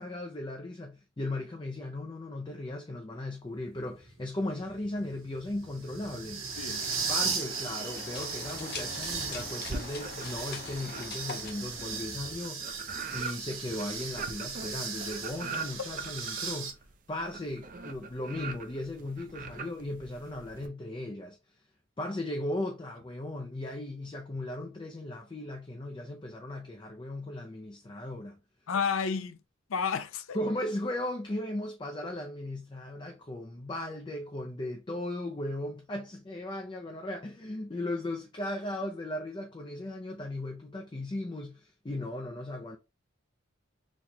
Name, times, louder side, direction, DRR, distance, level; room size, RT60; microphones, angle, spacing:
voice 1, 0.0-6.4 7.1-12.7 13.1-16.8 17.1-21.6 22.0-28.4 30.3-42.8, left 1 dB, 20° left, 0.4 m, -37 dB
sound 1, 3.6-16.7, right 5 dB, 85° right, 1.2 m, -37 dB
sound 2, 6.3-12.5, left 4 dB, 50° left, 0.7 m, -44 dB
sound 3, 9.6-10.5 10.8-20.7, right 4 dB, 40° right, 0.5 m, -41 dB
voice 2, 28.7-29.4 29.7-30.4, left 6 dB, 80° left, 0.5 m, -31 dB
4.2 x 3.0 x 2.2 m
head